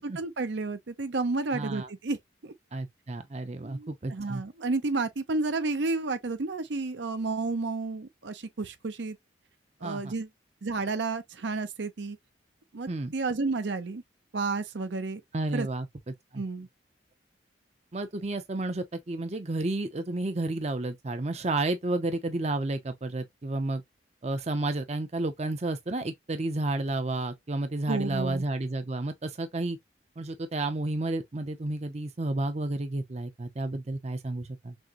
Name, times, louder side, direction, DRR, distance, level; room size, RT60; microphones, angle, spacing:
voice 1, 0.0-2.2 2.4-2.5 3.6-9.2 9.8-10.3 10.6-12.2 12.7-14.0 14.3-15.2 15.5-15.7 16.4-16.7 27.9-28.4, right 3 dB, 75° right, 0.6 m, -31 dB
voice 2, 1.5-1.9 2.7-4.4 9.8-10.1 12.9-13.1 15.3-16.4 17.9-23.8 24.2-29.8 30.2-34.8, right 2 dB, 35° right, 0.6 m, -31 dB
6.2 x 2.1 x 2.9 m
head